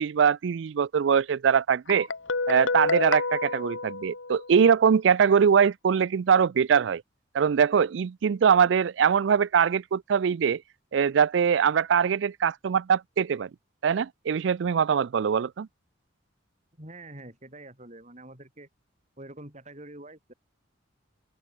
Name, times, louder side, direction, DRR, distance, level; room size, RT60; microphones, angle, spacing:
voice 1, 0.0-2.1 2.5-7.0 7.3-10.6 10.9-13.5 13.8-15.7, right 7 dB, 70° right, 0.4 m, -22 dB
Guitar, 1.9-4.7, left 3 dB, 85° left, 1.8 m, -29 dB
voice 2, 16.8-18.7 19.2-20.3, right 1 dB, 35° right, 6.9 m, -45 dB
open air
head